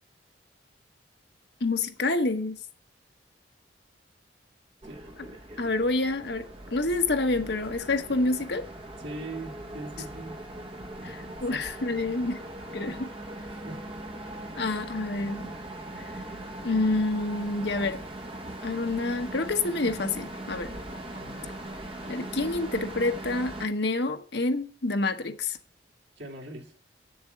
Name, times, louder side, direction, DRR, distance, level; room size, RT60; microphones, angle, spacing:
voice 1, 1.6-2.6 5.6-8.6 11.0-12.4 12.7-13.1 14.5-15.5 16.0-16.1 16.6-18.0 18.6-20.7 22.1-25.6, left 2 dB, 65° left, 1.1 m, -28 dB
sound 1, 4.8-23.7, right 1 dB, 30° right, 1.2 m, -40 dB
voice 2, 9.0-10.5 11.5-11.7 13.5-13.9 21.2-21.5 26.2-26.8, right 2 dB, 70° right, 2.5 m, -41 dB
8.5 x 6.9 x 7.9 m
head